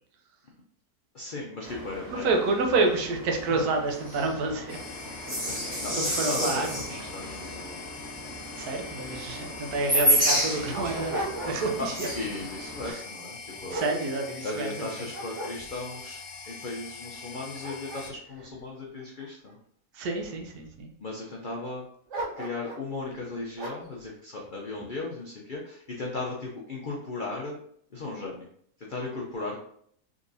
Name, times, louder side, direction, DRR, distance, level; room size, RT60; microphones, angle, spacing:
voice 1, 1.1-2.3 3.5-3.6 5.5-6.7 7.0-7.8 11.8-13.8 14.4-16.2 16.5-19.6 21.0-21.8 22.4-27.6 27.9-28.5 28.8-29.6, left 2 dB, 70° left, -2 dB, 0.4 m, -36 dB
sound 1, 1.6-12.9, equal, 15° right, 0.9 m, -31 dB
voice 2, 2.1-4.8 5.2-5.5 5.9-7.0 8.6-12.1 12.8-13.0 13.7-14.9 19.9-20.9, right 3 dB, 75° right, 2 dB, 1.2 m, -29 dB
sound 2, 4.7-18.1, left 5 dB, 90° left, 1.1 m, -43 dB
Dog, 9.5-9.6 10.2-11.9 12.3-12.6 13.2-14.7 15.1-16.0 16.6-16.7 17.2-19.5 20.2-20.8 22.1-22.9 23.6-24.0, right 1 dB, 60° right, 0.9 m, -38 dB
3.7 x 3.0 x 2.6 m, 0.63 s
omnidirectional pair, 1.6 m